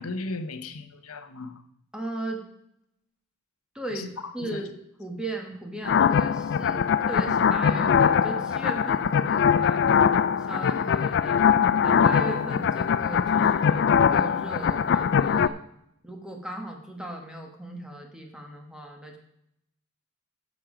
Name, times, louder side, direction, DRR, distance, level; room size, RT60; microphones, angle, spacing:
voice 1, 0.0-1.6 3.9-4.1 4.4-4.6, left 3 dB, 80° left, 10 dB, 0.9 m, -36 dB
voice 2, 1.9-2.4 3.7-4.1 4.3-9.8 10.4-11.5 11.8-15.6 16.0-19.2, right 1 dB, 5° right, 1 dB, 1.3 m, -37 dB
sound 1, 5.8-15.5, left 7 dB, 50° left, 0.3 m, -22 dB
10.5 x 7.3 x 5.0 m, 0.77 s
head